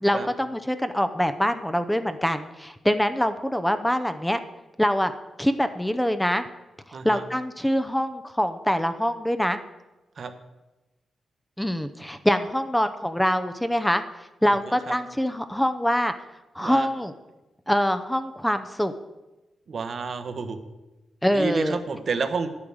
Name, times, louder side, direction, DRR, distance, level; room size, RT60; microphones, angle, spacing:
voice 1, 0.0-4.4 4.8-5.1 5.4-6.4 7.0-9.6 11.6-14.0 14.4-16.1 16.5-17.1 17.7-18.9 21.2-21.8, equal, 5° left, 9 dB, 0.7 m, -24 dB
voice 2, 6.9-7.2 10.2-10.3 14.5-14.9 16.6-16.9 19.7-20.6 21.3-22.5, right 5 dB, 55° right, 8 dB, 1.1 m, -30 dB
10.0 x 8.7 x 6.3 m, 1.0 s
cardioid pair, 85°, 0 cm